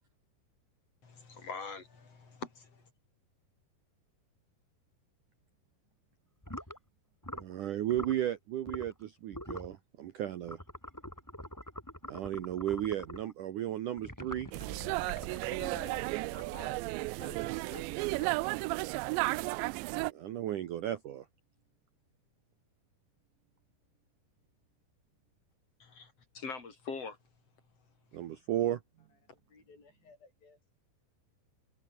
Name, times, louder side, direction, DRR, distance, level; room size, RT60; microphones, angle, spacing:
voice 1, 1.0-2.9 25.8-27.2, left 4 dB, 35° left, 5.6 m, -43 dB
sound 1, 6.4-6.8 7.2-7.5 7.9-8.2 8.6-9.0 9.3-9.7 10.4-13.3 14.0-16.8, equal, 5° left, 6.2 m, -45 dB
voice 2, 7.3-10.6 12.1-14.5 20.1-21.2 28.1-28.8, right 12 dB, 65° right, 2.1 m, -34 dB
sound 2, 14.5-20.1, right 23 dB, 90° right, 2.8 m, -34 dB
voice 3, 15.2-18.4 29.5-30.6, left 4 dB, 55° left, 9.2 m, -53 dB
omnidirectional pair, 5.0 m